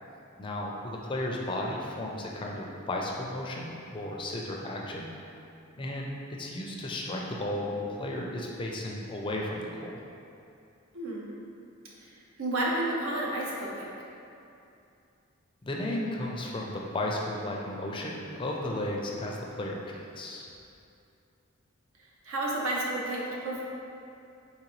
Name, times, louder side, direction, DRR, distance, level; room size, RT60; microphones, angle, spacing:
voice 1, 0.4-5.1 5.8-6.1 6.4-10.0 15.6-20.5, left 1 dB, 25° left, -1 dB, 0.4 m, -34 dB
voice 2, 12.4-13.9 22.2-23.6, right 1 dB, 80° right, -4 dB, 0.8 m, -31 dB
4.2 x 3.9 x 3.0 m, 2.6 s
head